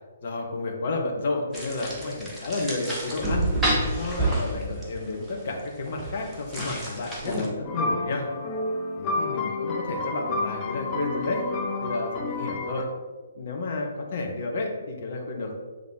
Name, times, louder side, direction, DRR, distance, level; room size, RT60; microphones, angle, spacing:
voice 1, 0.2-3.5 3.9-8.3 9.0-11.4 11.8-12.9 13.3-15.6, left 2 dB, 45° left, 0 dB, 1.0 m, -31 dB
sound 1, 1.5-7.5, right 1 dB, 5° right, 1.1 m, -29 dB
sound 2, 7.6-12.8, left 2 dB, 25° left, 0.7 m, -30 dB
7.6 x 3.6 x 3.7 m, 1.4 s
figure-of-eight pair, 130°, 0 cm